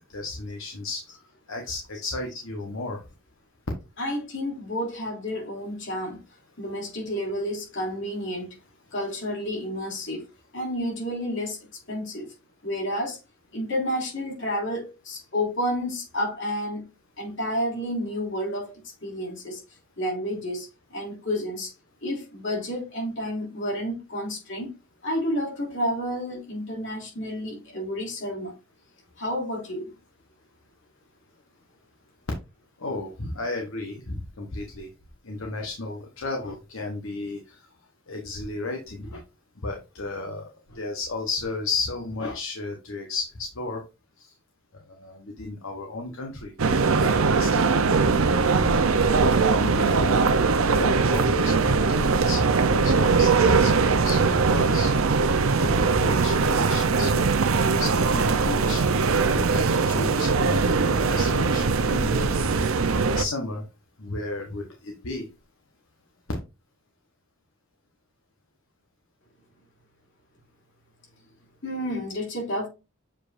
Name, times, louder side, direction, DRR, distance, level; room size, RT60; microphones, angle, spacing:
voice 1, 0.1-1.0 1.5-3.0 32.8-34.9 35.2-37.6 38.1-39.2 39.6-43.8 44.2-44.3 44.9-46.5 46.9-47.7 48.6-48.9 49.5-50.4 50.6-54.9 55.5-57.1 57.8-58.9 59.1-62.3 62.9-63.6 64.0-65.2, left 3 dB, 75° left, 1.1 m, -33 dB
voice 2, 4.0-6.2 6.6-8.6 8.9-10.2 10.5-11.6 11.9-12.3 12.6-13.2 13.5-16.8 17.2-18.7 19.0-19.6 20.0-21.7 22.0-24.7 25.0-28.5 29.2-29.9 71.6-72.7, equal, 60° left, 3.0 m, -30 dB
sound 1, 46.6-63.3, right 4 dB, 85° right, 0.6 m, -21 dB
7.2 x 5.0 x 2.6 m
head